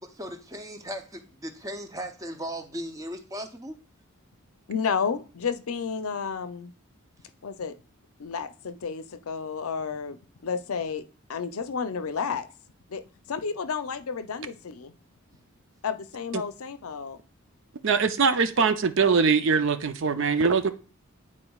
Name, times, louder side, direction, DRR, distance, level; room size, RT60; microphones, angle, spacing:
voice 1, 0.0-3.8, equal, 15° right, 7 dB, 0.6 m, -37 dB
voice 2, 4.7-6.7 7.4-7.7 8.2-11.0 11.3-12.5 12.9-14.9 15.8-17.2, left 6 dB, 80° left, 11 dB, 0.6 m, -31 dB
voice 3, 17.8-20.7, right 5 dB, 60° right, 9 dB, 0.5 m, -22 dB
9.8 x 4.3 x 2.3 m, 0.36 s
head